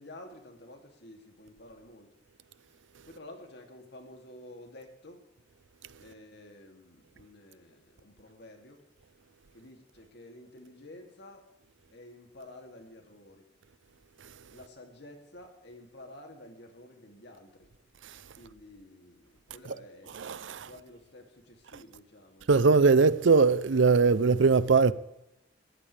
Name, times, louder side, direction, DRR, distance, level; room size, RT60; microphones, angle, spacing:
voice 1, 0.0-2.1 3.0-5.3 6.0-8.8 9.5-11.5 11.9-13.5 14.5-17.7 18.4-22.5, left 1 dB, 65° left, 2.8 m, -51 dB
voice 2, 20.2-20.7 22.5-24.9, right 4 dB, 80° right, 0.6 m, -21 dB
20.5 x 14.0 x 3.4 m
head